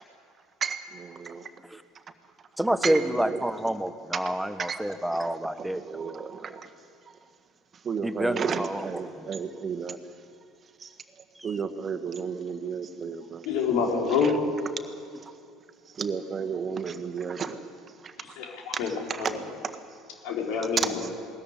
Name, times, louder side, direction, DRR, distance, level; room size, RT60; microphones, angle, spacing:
voice 1, 0.6-1.5 2.8-3.4 4.1-4.3 4.6-4.8 5.6-6.7 7.8-10.0 10.8-10.9 11.4-13.4 14.2-14.3 16.0-17.6 18.0-18.1 18.9-19.3 20.8-21.1, right 6 dB, 35° right, 9 dB, 1.6 m, -32 dB
voice 2, 2.6-6.1 8.0-9.3 11.3-11.5, right 1 dB, 5° right, 11 dB, 1.3 m, -29 dB
voice 3, 13.5-14.4 18.4-19.4 20.2-21.1, left 5 dB, 65° left, 0 dB, 4.2 m, -27 dB
19.5 x 14.0 x 9.7 m, 2.3 s
hypercardioid pair, 65°, 0 cm